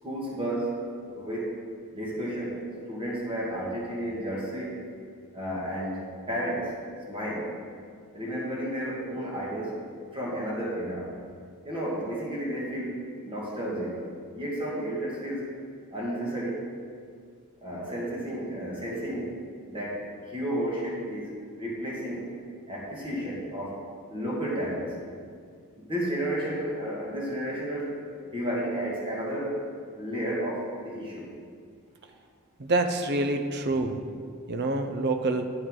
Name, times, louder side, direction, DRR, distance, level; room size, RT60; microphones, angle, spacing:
voice 1, 0.0-0.8 1.1-1.6 1.9-2.6 2.9-4.8 5.3-6.8 7.1-7.5 8.1-9.8 10.1-11.2 11.6-14.0 14.3-15.5 15.9-16.6 17.6-19.4 19.7-22.3 22.7-23.8 24.1-25.0 25.8-27.9 28.3-29.6 30.0-31.3, right 1 dB, 25° right, -5 dB, 1.9 m, -32 dB
voice 2, 32.6-34.0 34.5-35.5, right 2 dB, 50° right, 7 dB, 0.7 m, -27 dB
9.7 x 9.2 x 3.8 m, 2.1 s
head